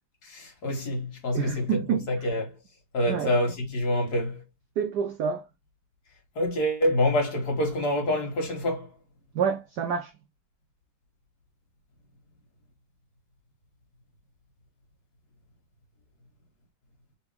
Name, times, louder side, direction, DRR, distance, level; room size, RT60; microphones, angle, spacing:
voice 1, 0.2-2.6 2.9-4.4 6.4-8.9, left 1 dB, 50° left, 1.9 m, -27 dB
voice 2, 1.3-2.1 3.1-3.3 4.8-5.5 9.3-10.1, right 7 dB, 80° right, 0.9 m, -28 dB
3.9 x 3.5 x 3.3 m
omnidirectional pair, 2.4 m